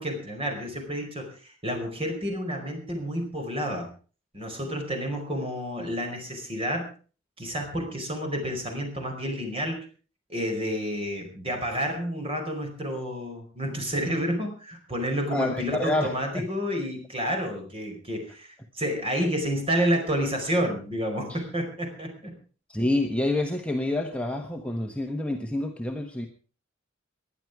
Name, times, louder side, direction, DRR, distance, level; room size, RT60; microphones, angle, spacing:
voice 1, 0.0-1.3 1.6-3.9 4.3-6.9 7.4-9.8 10.3-18.5 18.8-22.1, equal, 30° right, 3 dB, 4.9 m, -29 dB
voice 2, 15.3-16.4 21.3-21.4 22.7-26.3, left 2 dB, 5° left, 2 dB, 1.2 m, -28 dB
20.5 x 11.0 x 4.8 m, 0.39 s
head